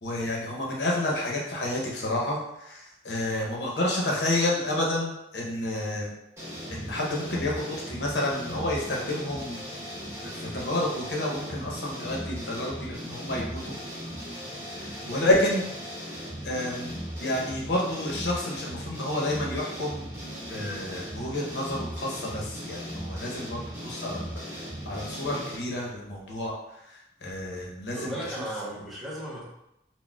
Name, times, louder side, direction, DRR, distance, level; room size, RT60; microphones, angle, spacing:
voice 1, 0.0-6.1 6.7-9.6 10.2-13.8 14.8-15.7 16.4-20.0 20.5-24.4 24.8-26.5 26.9-28.4, left 1 dB, 75° left, -2 dB, 0.8 m, -30 dB
sound 1, 6.4-25.6, equal, 15° right, 1.4 m, -38 dB
voice 2, 28.0-29.4, right 1 dB, ahead, -8 dB, 0.8 m, -35 dB
4.0 x 2.1 x 2.3 m, 0.85 s
head